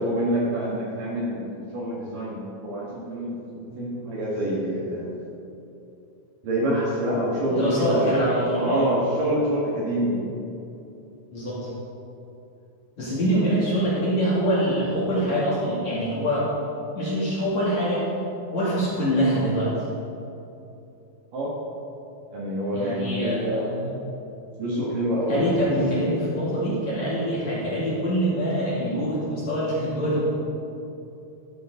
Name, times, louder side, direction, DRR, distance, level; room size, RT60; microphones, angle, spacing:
voice 1, 0.0-5.1 6.4-8.2 8.6-10.1 21.3-21.6 22.3-23.7 24.6-25.7, right 1 dB, 55° right, -6 dB, 3.1 m, -26 dB
voice 2, 7.5-8.9 11.3-11.7 13.0-16.5 16.9-18.0 18.5-19.7 22.7-24.0 25.3-30.3, equal, 45° left, -8 dB, 3.1 m, -24 dB
14.0 x 12.5 x 3.8 m, 2.8 s
omnidirectional pair, 5.4 m